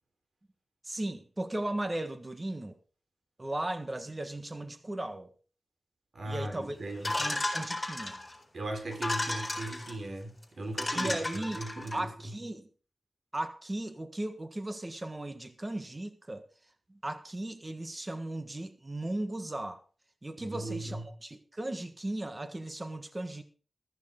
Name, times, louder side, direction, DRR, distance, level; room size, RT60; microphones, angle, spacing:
voice 1, 0.8-2.8 3.4-5.3 6.2-8.2 10.9-11.6 11.9-12.7 13.3-16.4 16.9-19.8 20.2-23.4, right 1 dB, 25° right, 1.5 m, -36 dB
voice 2, 6.1-7.2 8.5-12.3 20.4-21.0, right 1 dB, 70° right, 4.0 m, -38 dB
sound 1, 7.0-8.3 8.9-9.9 10.4-10.5 10.8-12.0, left 2 dB, 20° left, 7.7 m, -33 dB
14.5 x 14.5 x 3.7 m
wide cardioid pair, 85°, 0 cm